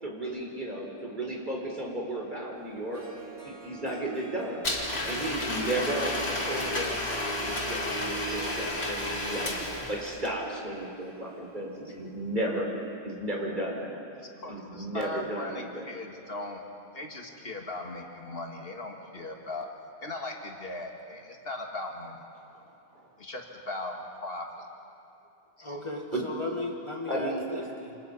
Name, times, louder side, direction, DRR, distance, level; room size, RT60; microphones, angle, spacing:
voice 1, 0.0-3.0 3.4-4.7 5.1-7.0 7.4-12.7 13.0-14.0 14.5-15.9 26.1-26.2 27.1-27.5, right 1 dB, 50° right, -1 dB, 4.3 m, -34 dB
Harp, 2.6-2.7 2.9-12.4, right 7 dB, 75° right, 1.9 m, -44 dB
Domestic sounds home sounds, 4.6-10.3, left 2 dB, 85° left, 2.8 m, -32 dB
voice 2, 14.1-16.6 16.9-19.7 20.0-22.2 23.2-24.7 25.6-25.8, left 2 dB, 65° left, 1 dB, 2.5 m, -38 dB
voice 3, 25.6-28.0, left 2 dB, 30° left, 1 dB, 1.9 m, -36 dB
28.0 x 27.5 x 5.6 m, 2.7 s
omnidirectional pair, 1.0 m